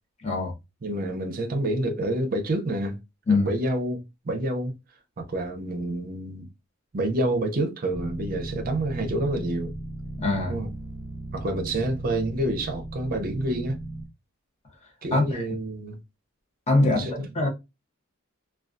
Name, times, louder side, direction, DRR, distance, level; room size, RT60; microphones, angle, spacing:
voice 1, 0.2-0.5 3.3-3.5 10.2-10.5 15.1-15.5 16.7-17.5, left 2 dB, 30° left, 0.6 m, -23 dB
voice 2, 0.8-3.0 3.3-4.7 5.2-6.5 6.9-9.7 10.5-10.7 11.3-13.8 15.0-16.0 16.8-17.1, right 1 dB, 40° right, 0.5 m, -28 dB
sound 1, 7.9-14.0, right 2 dB, 75° left, 1.3 m, -36 dB
2.2 x 2.2 x 2.5 m
head